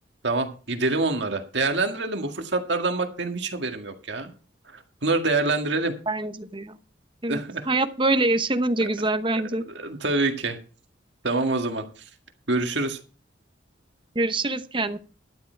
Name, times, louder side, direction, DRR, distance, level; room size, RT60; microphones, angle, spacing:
voice 1, 0.2-4.3 4.7-6.0 7.3-7.7 9.7-10.6 11.2-12.0 12.5-13.0, right 3 dB, 65° right, 5 dB, 1.9 m, -26 dB
voice 2, 6.1-6.8 7.2-9.6 14.1-15.0, right 2 dB, 25° right, 10 dB, 0.9 m, -25 dB
12.0 x 10.5 x 4.5 m, 0.36 s
head